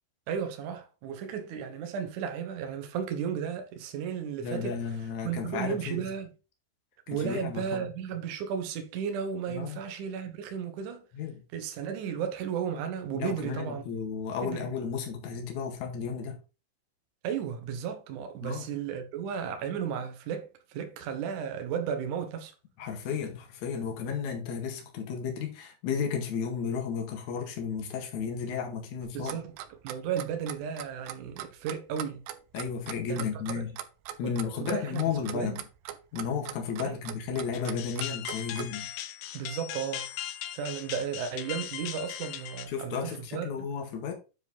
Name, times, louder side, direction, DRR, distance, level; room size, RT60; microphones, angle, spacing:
voice 1, 0.3-4.8 5.2-6.3 7.1-11.0 11.5-13.8 14.4-14.7 17.2-22.5 29.1-29.5 29.8-32.2 33.1-33.3 33.6-33.7 34.2-34.4 34.6-35.0 35.3-35.6 36.8-37.0 39.3-40.1 40.5-43.5, right 7 dB, 65° right, 2.2 m, -34 dB
voice 2, 4.4-6.1 7.1-7.9 9.5-9.8 11.1-11.4 13.1-16.3 18.4-18.7 22.8-29.4 32.5-33.8 34.2-35.6 36.1-38.9 42.7-44.1, left 6 dB, 55° left, 2.8 m, -33 dB
Clock, 29.0-38.7, right 12 dB, 85° right, 2.9 m, -40 dB
sound 1, 37.5-42.7, left 11 dB, 75° left, 2.3 m, -39 dB
9.8 x 4.8 x 4.0 m
omnidirectional pair, 4.8 m